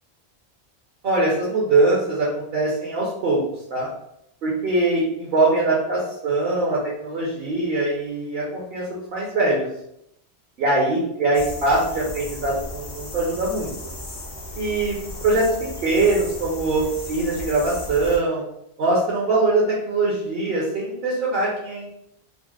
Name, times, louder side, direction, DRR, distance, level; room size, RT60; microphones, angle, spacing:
voice 1, 1.0-3.4 3.7-3.9 4.4-9.7 10.6-13.7 14.5-15.0 15.2-15.5 15.8-18.4 18.8-21.9, right 2 dB, 65° right, -5 dB, 0.9 m, -22 dB
sound 1, 11.3-18.2, left 1 dB, 75° left, 1.0 m, -36 dB
3.8 x 2.0 x 2.3 m, 0.78 s
omnidirectional pair, 1.1 m